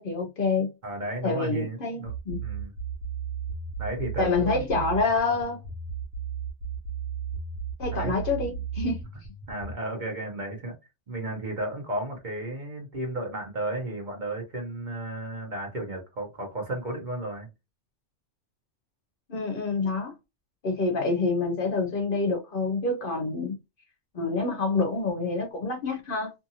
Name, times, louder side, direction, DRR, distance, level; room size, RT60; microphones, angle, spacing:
voice 1, 0.0-0.7 1.2-2.4 4.2-5.6 7.8-9.0 19.3-20.1 20.6-23.6 24.1-26.3, left 3 dB, 55° left, 0.8 m, -27 dB
voice 2, 0.8-2.1 2.4-2.7 3.8-4.9 7.9-8.2 9.5-10.8 11.1-17.5, right 1 dB, 45° right, 1.0 m, -33 dB
sound 1, 2.1-9.7, right 6 dB, 80° right, 1.1 m, -34 dB
2.7 x 2.6 x 2.7 m
omnidirectional pair, 1.2 m